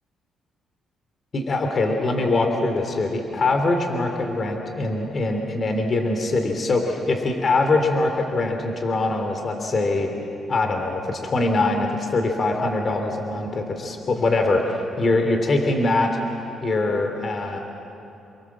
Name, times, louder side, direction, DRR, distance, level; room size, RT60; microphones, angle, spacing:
voice 1, 1.3-10.1 10.5-16.2 16.6-17.6, left 2 dB, 45° left, 4 dB, 3.4 m, -23 dB
29.0 x 22.5 x 7.5 m, 3.0 s
cardioid pair, 90°, 0 cm